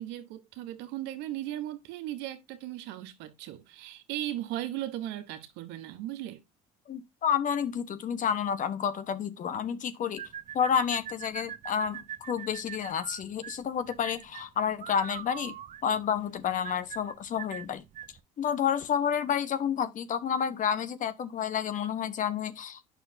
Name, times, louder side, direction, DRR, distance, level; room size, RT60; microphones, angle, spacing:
voice 1, 0.0-6.4, right 13 dB, 75° right, 1.2 m, -37 dB
voice 2, 6.9-10.3 10.5-15.6 15.8-17.8 18.4-22.8, left 8 dB, 50° left, 1.2 m, -30 dB
sound 1, 10.2-18.2, right 10 dB, 45° right, 0.8 m, -42 dB
9.0 x 6.2 x 2.7 m
supercardioid pair, 80°, 18 cm